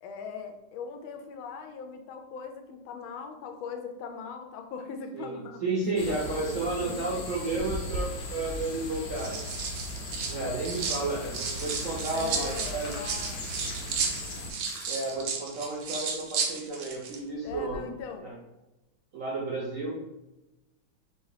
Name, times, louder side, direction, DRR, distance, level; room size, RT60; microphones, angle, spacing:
voice 1, 0.0-5.6 5.9-7.7 12.1-13.4 14.6-14.7 17.4-18.3, left 5 dB, 85° left, 5 dB, 1.5 m, -40 dB
voice 2, 5.1-9.4 10.3-12.9 14.9-17.9 18.2-18.3 19.1-19.9, right 2 dB, 65° right, -3 dB, 0.8 m, -32 dB
sound 1, 6.0-14.5, left 1 dB, 65° left, 0.6 m, -38 dB
sound 2, 7.5-8.1 8.9-11.0 11.3-17.2 17.5-17.7, right 5 dB, 80° right, 1.5 m, -33 dB
sound 3, 10.1-15.1, left 1 dB, 50° left, 1.3 m, -49 dB
3.6 x 2.8 x 4.7 m, 1.0 s
omnidirectional pair, 2.2 m